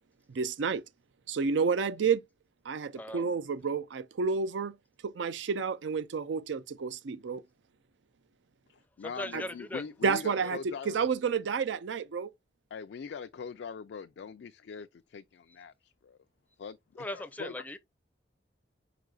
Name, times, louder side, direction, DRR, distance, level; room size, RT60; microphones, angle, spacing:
voice 1, 0.3-0.8 1.3-2.2 2.7-4.8 5.0-7.4 9.3-9.4 10.0-10.6 10.9-12.3, right 5 dB, 85° right, 0.4 m, -30 dB
voice 2, 2.9-3.2 9.0-9.8 10.4-10.5 17.0-17.8, left 1 dB, 10° left, 0.4 m, -39 dB
voice 3, 8.7-11.0 12.7-16.2 16.6-17.7, left 6 dB, 75° left, 0.3 m, -42 dB
4.9 x 4.7 x 2.3 m
head